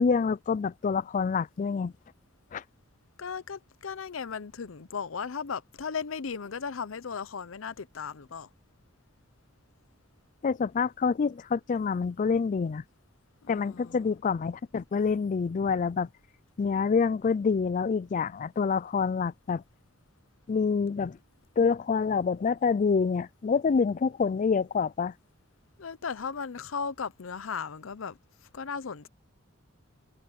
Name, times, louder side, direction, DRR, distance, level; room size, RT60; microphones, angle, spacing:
voice 1, 0.0-1.9 2.5-2.6 10.4-12.8 13.5-16.1 16.6-19.6 20.5-21.2 21.6-25.1, left 5 dB, 40° left, 0.3 m, -27 dB
voice 2, 3.2-8.5 13.4-14.1 25.8-28.2 28.5-29.1, left 6 dB, 75° left, 0.7 m, -36 dB
head